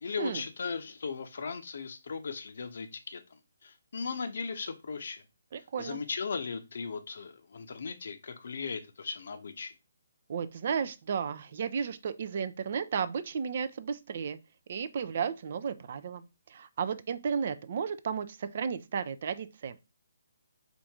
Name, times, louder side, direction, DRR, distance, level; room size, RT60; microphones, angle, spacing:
voice 1, 0.0-3.2 3.6-5.2 5.8-9.7, left 5 dB, 55° left, 0.6 m, -37 dB
voice 2, 5.5-6.0 10.3-14.4 14.7-19.8, right 6 dB, 45° right, 0.3 m, -33 dB
4.7 x 2.5 x 3.5 m
figure-of-eight pair, 140°, 0 cm